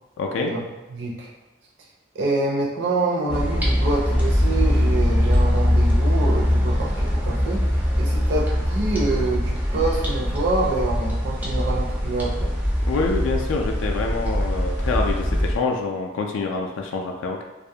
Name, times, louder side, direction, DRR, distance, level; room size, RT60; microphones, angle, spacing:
voice 1, 0.2-0.5 12.9-17.4, left 3 dB, 80° left, 1 dB, 0.3 m, -26 dB
voice 2, 0.9-1.3 2.1-7.6 8.0-12.5, right 2 dB, 60° right, -3 dB, 0.5 m, -26 dB
sound 1, 3.3-15.6, equal, 10° right, 0.3 m, -22 dB
2.3 x 2.1 x 2.7 m, 1.1 s
head